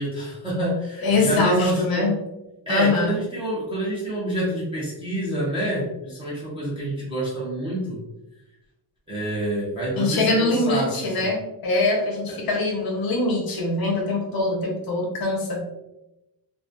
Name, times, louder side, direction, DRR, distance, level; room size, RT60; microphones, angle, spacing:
voice 1, 0.0-2.1 2.7-8.0 9.1-11.3 12.3-12.4, right 1 dB, 15° right, -7 dB, 0.3 m, -27 dB
voice 2, 1.0-2.1 2.7-3.1 10.0-15.6, left 2 dB, 50° left, 0 dB, 0.6 m, -23 dB
2.3 x 2.2 x 2.5 m, 0.93 s
wide cardioid pair, 180°, 47 cm